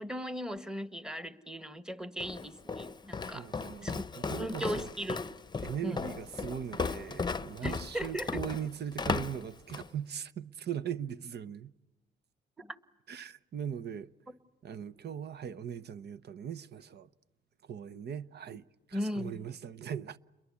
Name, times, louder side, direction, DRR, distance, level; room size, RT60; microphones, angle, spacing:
voice 1, 0.0-3.5 3.8-4.0 4.4-5.2 5.8-6.0 7.6-8.4 12.6-12.8 18.9-19.4, equal, 5° right, 1.5 m, -37 dB
Walk footsteps, 2.2-9.9, left 4 dB, 20° left, 0.9 m, -36 dB
voice 2, 3.3-4.9 5.6-11.7 13.1-14.1 14.6-17.1 17.6-20.2, right 9 dB, 55° right, 0.9 m, -40 dB
29.5 x 22.5 x 8.5 m
cardioid pair, 90°, 20 cm